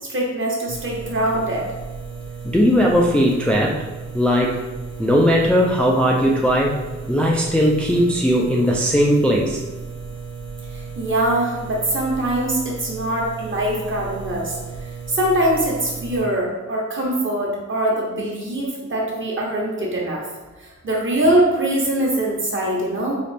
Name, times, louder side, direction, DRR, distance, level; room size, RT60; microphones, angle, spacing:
voice 1, 0.0-1.6 10.7-14.5 15.1-20.3 20.6-23.2, right 1 dB, 40° right, -3 dB, 1.1 m, -22 dB
sound 1, 0.7-16.2, right 5 dB, 80° right, 1.0 m, -35 dB
voice 2, 2.4-3.9 4.1-4.7 5.0-6.8 7.1-9.6, equal, 5° left, -2 dB, 0.3 m, -18 dB
4.1 x 3.0 x 3.3 m, 1.2 s
wide cardioid pair, 120°, 30 cm